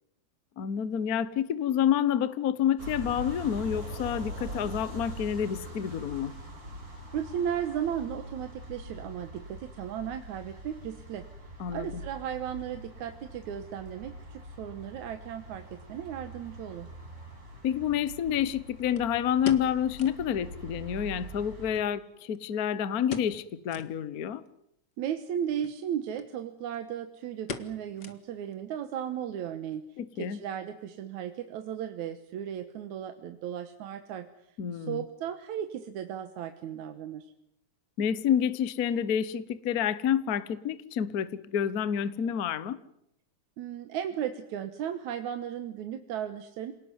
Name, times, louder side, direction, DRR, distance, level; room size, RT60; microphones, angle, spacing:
voice 1, 0.6-6.3 11.6-11.9 17.6-24.4 30.0-30.4 34.6-35.0 38.0-42.8, left 9 dB, 75° left, 0.8 m, -28 dB
sound 1, 2.8-21.7, right 1 dB, 30° right, 4.8 m, -43 dB
voice 2, 7.1-11.3 11.7-16.9 25.0-29.9 30.2-34.3 34.7-37.3 43.6-46.7, right 9 dB, 80° right, 2.5 m, -35 dB
sound 2, 16.9-17.0 19.0-20.3 20.6-20.7 21.0-21.1 21.7-22.6 23.0-23.4 23.7-24.0 24.5-24.6 25.5-25.8 26.2-26.3 26.6-26.9 27.5-28.5 28.8-28.9 29.5-29.9 30.1-30.2, left 6 dB, 45° left, 1.8 m, -41 dB
27.5 x 19.0 x 9.5 m
omnidirectional pair, 3.3 m